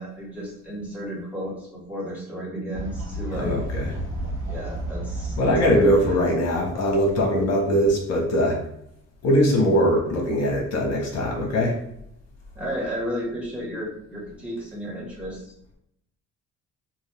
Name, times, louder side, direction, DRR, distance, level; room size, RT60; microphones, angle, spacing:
voice 1, 0.0-3.6 4.5-6.3 12.5-15.4, equal, 5° right, -6 dB, 1.4 m, -33 dB
Fowl, 2.7-8.0, right 2 dB, 45° right, 1.0 m, -33 dB
voice 2, 3.3-3.9 5.4-8.6 9.2-11.8, equal, 60° left, -1 dB, 0.9 m, -21 dB
2.6 x 2.4 x 3.3 m, 0.76 s
cardioid pair, 90°, 30 cm